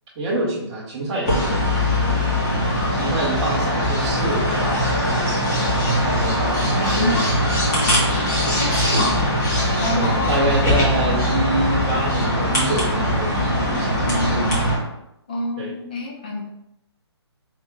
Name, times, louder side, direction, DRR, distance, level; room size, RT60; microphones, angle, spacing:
voice 1, 0.2-2.2 2.9-5.4 5.7-7.3 8.5-8.6 9.9-14.7 15.6-15.7, right 2 dB, 10° right, -7 dB, 0.8 m, -27 dB
sound 1, 1.2-14.8, left 1 dB, 40° left, 1.6 m, -21 dB
voice 2, 6.8-7.2 8.6-9.2 9.8-10.6 14.0-14.6 15.3-16.4, left 1 dB, 20° left, -1 dB, 0.5 m, -26 dB
3.6 x 2.7 x 4.4 m, 0.82 s
hypercardioid pair, 180°, 14 cm